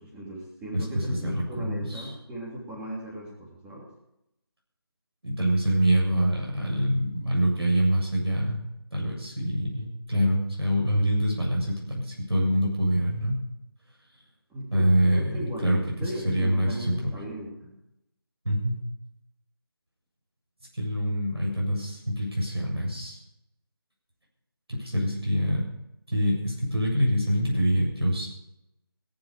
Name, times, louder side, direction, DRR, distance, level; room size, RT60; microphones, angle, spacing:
voice 1, 0.0-3.9 14.5-17.7, right 1 dB, 5° right, -4 dB, 3.1 m, -38 dB
voice 2, 0.7-2.1 5.2-8.6 8.9-13.4 14.7-15.3 15.6-17.0 18.4-18.8 20.8-23.2 24.7-25.7 26.1-28.3, equal, 85° right, -2 dB, 7.6 m, -25 dB
17.5 x 13.0 x 5.2 m, 0.84 s
figure-of-eight pair, 160°, 13 cm